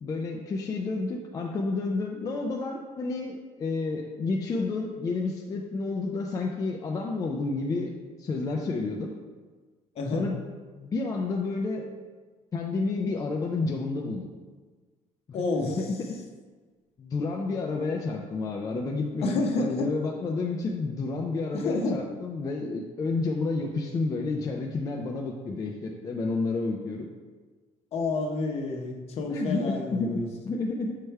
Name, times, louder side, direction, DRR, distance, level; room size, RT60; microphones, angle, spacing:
voice 1, 0.0-9.1 10.1-10.4 10.7-11.9 12.5-14.3 15.3-16.2 17.0-27.1 29.3-31.0, left 3 dB, 25° left, 1 dB, 0.4 m, -30 dB
voice 2, 10.0-10.3 15.3-15.8 19.2-19.9 21.5-22.0 27.9-30.3, left 3 dB, 50° left, 3 dB, 0.8 m, -29 dB
6.6 x 3.3 x 4.5 m, 1.4 s
cardioid pair, 160°, 13 cm